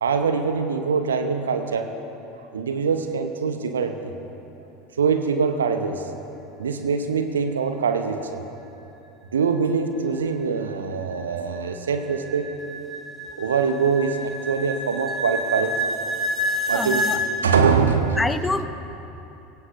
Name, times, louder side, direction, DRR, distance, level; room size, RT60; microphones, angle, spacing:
voice 1, 0.0-1.9 2.5-4.1 5.0-6.0 6.6-8.4 9.3-12.5 13.4-15.7 16.7-18.2, right 5 dB, 75° right, 7 dB, 0.8 m, -23 dB
sound 1, 10.0-17.2, equal, 20° right, 2.6 m, -29 dB
voice 2, 16.7-17.2 18.2-18.6, left 2 dB, 10° left, 10 dB, 0.7 m, -25 dB
22.0 x 17.0 x 2.6 m, 3.0 s
figure-of-eight pair, 75°, 0 cm